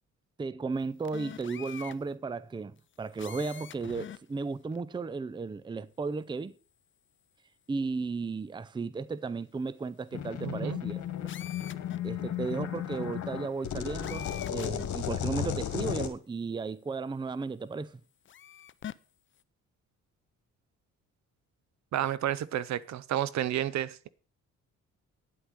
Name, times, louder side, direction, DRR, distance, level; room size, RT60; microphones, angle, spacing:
voice 1, 0.4-6.5 7.7-11.0 12.0-18.0, right 4 dB, 15° right, 0.5 m, -35 dB
sound 1, 1.1-2.0 3.1-4.2 4.7-4.8 11.3-12.0 14.0-14.9 15.8-15.9 18.3-18.9, left 9 dB, 40° left, 0.6 m, -44 dB
sound 2, 10.1-16.1, left 10 dB, 70° left, 1.9 m, -34 dB
voice 2, 10.4-10.8 21.9-24.1, right 12 dB, 65° right, 0.7 m, -31 dB
9.8 x 8.2 x 6.1 m
cardioid pair, 90°, 30 cm